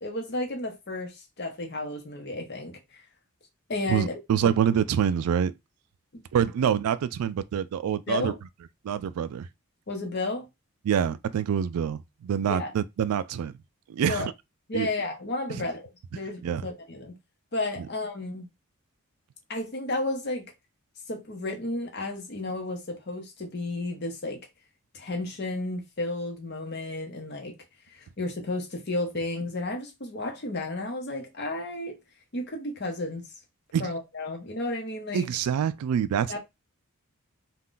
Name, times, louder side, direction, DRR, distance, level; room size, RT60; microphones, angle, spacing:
voice 1, 0.0-3.0 3.7-4.5 8.1-8.3 9.9-10.5 12.5-12.7 14.1-14.3 14.7-17.2 17.5-18.5 19.5-20.5 21.1-24.5 24.9-27.6 27.9-32.0 32.3-33.3 33.8-35.3 36.3-36.4, left 2 dB, 50° left, 0.7 m, -32 dB
voice 2, 3.9-5.5 6.3-8.3 8.8-9.5 10.8-13.6 13.9-14.3 14.7-14.9 15.5-15.6 16.4-16.7 33.7-33.9 35.1-36.4, right 8 dB, 85° right, 0.3 m, -26 dB
2.5 x 2.2 x 3.6 m
head